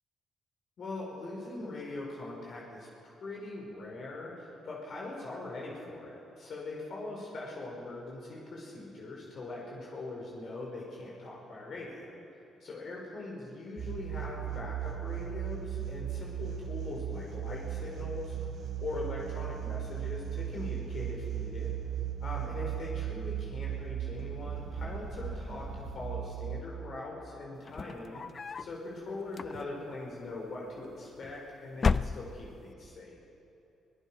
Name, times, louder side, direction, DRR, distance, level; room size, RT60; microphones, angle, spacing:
voice 1, 0.8-12.1 12.6-18.3 18.8-21.7 22.2-28.2 28.6-33.2, left 2 dB, 55° left, -3 dB, 4.8 m, -41 dB
sound 1, 13.8-26.6, right 10 dB, 60° right, 3.1 m, -37 dB
sound 2, 27.6-28.8 29.3-29.9 30.9-31.4 31.7-32.7, left 5 dB, 40° left, 0.5 m, -32 dB
24.5 x 18.5 x 5.8 m, 2.8 s
cardioid pair, 90°, 0 cm